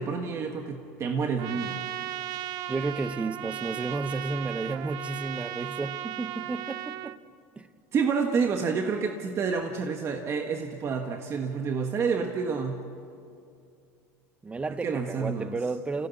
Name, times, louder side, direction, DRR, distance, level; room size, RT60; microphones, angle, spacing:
voice 1, 0.0-1.8 7.9-12.8 14.8-15.5, right 5 dB, 35° right, 1.5 m, -29 dB
Trumpet, 1.4-7.2, right 12 dB, 60° right, 0.7 m, -36 dB
voice 2, 2.7-7.2 7.6-7.7 14.4-16.1, right 3 dB, 15° right, 0.9 m, -32 dB
26.5 x 16.5 x 8.2 m
supercardioid pair, 115°, 8 cm